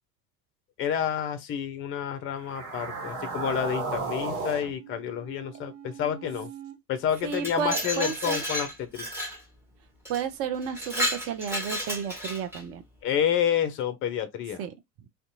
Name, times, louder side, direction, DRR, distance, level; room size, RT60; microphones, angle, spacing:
voice 1, 0.8-6.5 6.9-9.1 13.0-14.7, left 9 dB, 30° left, 0.5 m, -29 dB
sound 1, 2.4-6.7, right 3 dB, 50° right, 1.2 m, -36 dB
Glass, 7.1-9.4 10.1-10.2 10.6-12.6, equal, 5° right, 0.9 m, -32 dB
voice 2, 7.2-8.4 10.1-12.8 14.6-14.7, right 7 dB, 35° right, 0.5 m, -32 dB
2.6 x 2.2 x 2.6 m
figure-of-eight pair, 75°, 46 cm